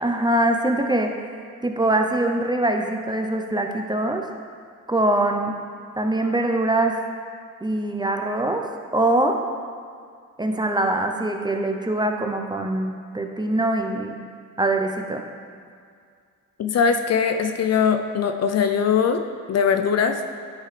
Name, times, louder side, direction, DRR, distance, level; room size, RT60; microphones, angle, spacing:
voice 1, 0.0-1.1 1.6-4.2 4.9-5.5 6.0-6.9 7.6-8.6 8.9-9.4 10.4-14.2 14.6-15.2, right 1 dB, 15° right, 3 dB, 0.5 m, -23 dB
voice 2, 16.6-19.2 19.5-20.2, left 6 dB, 50° left, 6 dB, 0.5 m, -21 dB
9.7 x 3.6 x 3.2 m, 2.2 s
cardioid pair, 65°, 33 cm